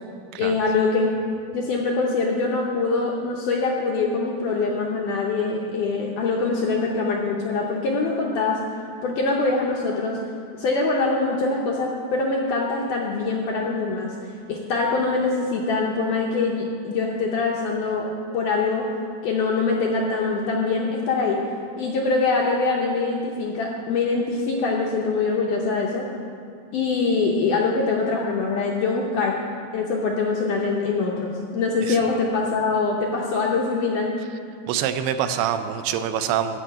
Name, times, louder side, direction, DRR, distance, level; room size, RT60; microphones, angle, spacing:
voice 1, 0.4-1.1 1.5-8.6 9.0-10.2 10.5-14.1 14.5-18.9 19.2-21.4 21.8-26.1 26.7-29.4 29.7-34.1, left 3 dB, 75° left, -1 dB, 1.9 m, -23 dB
voice 2, 34.7-36.6, right 9 dB, 85° right, 9 dB, 2.5 m, -25 dB
12.5 x 5.0 x 8.8 m, 2.3 s
omnidirectional pair, 4.6 m